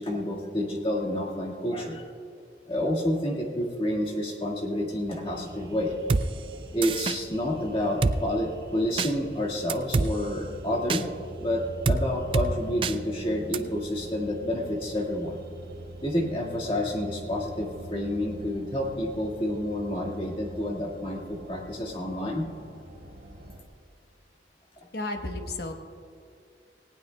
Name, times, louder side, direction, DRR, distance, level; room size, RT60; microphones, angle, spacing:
voice 1, 0.0-2.1 2.7-6.0 6.7-11.1 11.4-15.4 16.0-22.5, left 1 dB, 30° left, -1 dB, 1.8 m, -29 dB
sound 1, 5.2-23.6, right 1 dB, 55° right, 1.7 m, -44 dB
Drum kit, 6.1-6.2 6.8-7.2 8.0-8.2 9.0-9.1 9.7-10.1 10.9-11.0 11.9-12.0 12.3-12.5 12.8-12.9 13.5-13.6, right 4 dB, 30° right, 0.3 m, -24 dB
voice 2, 24.9-25.7, left 2 dB, 60° left, 5 dB, 1.1 m, -32 dB
18.5 x 18.0 x 2.3 m, 2.3 s
head